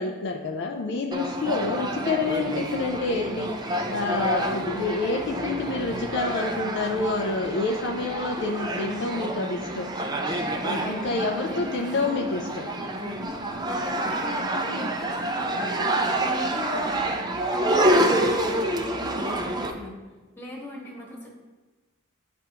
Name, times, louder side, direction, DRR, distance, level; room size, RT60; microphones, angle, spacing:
voice 1, 0.0-3.5 3.9-9.9 10.3-12.7, left 3 dB, 55° left, 2 dB, 0.4 m, -28 dB
sound 1, 1.1-19.7, right 1 dB, 20° right, 0.4 m, -28 dB
voice 2, 4.3-4.7 10.6-11.7 13.0-17.1 17.5-20.0 20.4-21.3, left 1 dB, 10° left, -4 dB, 1.2 m, -39 dB
9.6 x 3.4 x 2.9 m, 1.2 s
head